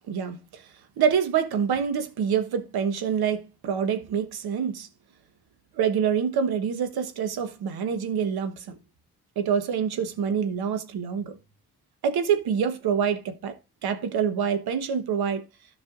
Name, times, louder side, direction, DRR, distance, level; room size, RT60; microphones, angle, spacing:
voice 1, 0.1-0.7 1.0-4.9 5.7-8.8 9.4-11.4 12.0-13.6 13.8-15.4, right 7 dB, 80° right, 1.2 m, -26 dB
13.5 x 5.5 x 2.5 m
supercardioid pair, 45°, 37 cm